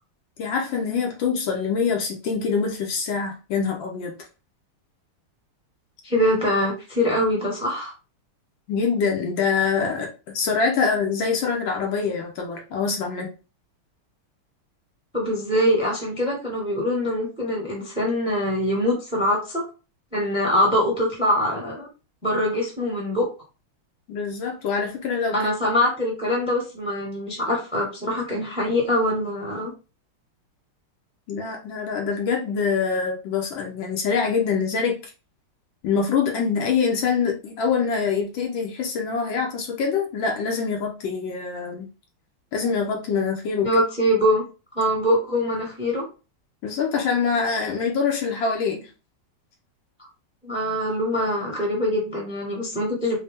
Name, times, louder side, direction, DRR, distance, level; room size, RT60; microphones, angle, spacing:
voice 1, 0.4-4.1 8.7-13.3 24.1-25.4 31.3-35.0 35.8-41.9 42.5-43.7 46.6-48.9, left 5 dB, 70° left, 1 dB, 1.4 m, -24 dB
voice 2, 6.0-7.9 15.1-19.6 20.1-21.9 22.2-23.3 25.3-29.7 43.6-44.4 44.7-46.0 50.4-53.1, equal, 5° right, -2 dB, 0.9 m, -23 dB
4.2 x 2.2 x 3.4 m, 0.32 s
omnidirectional pair, 2.3 m